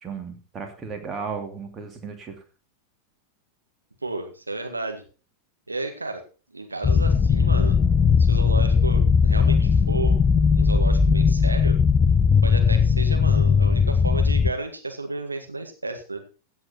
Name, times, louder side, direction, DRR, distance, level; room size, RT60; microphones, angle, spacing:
voice 1, 0.0-2.4, right 5 dB, 25° right, 5 dB, 2.8 m, -35 dB
voice 2, 4.0-5.0 5.7-6.2 6.5-7.8 8.2-10.2 10.5-11.8 12.4-16.2, right 2 dB, 80° right, 5 dB, 1.9 m, -32 dB
sound 1, 6.8-14.5, left 5 dB, 25° left, 0.6 m, -18 dB
15.5 x 8.2 x 4.4 m, 0.36 s
figure-of-eight pair, 90°, 0 cm